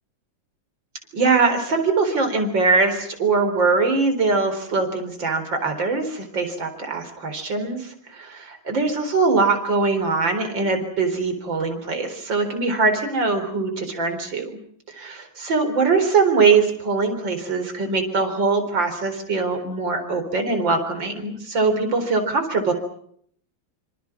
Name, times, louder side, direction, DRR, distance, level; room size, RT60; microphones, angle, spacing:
voice 1, 1.1-14.6 14.9-22.7, right 4 dB, 65° right, 7 dB, 4.8 m, -22 dB
26.5 x 26.5 x 6.0 m, 0.65 s
omnidirectional pair, 2.2 m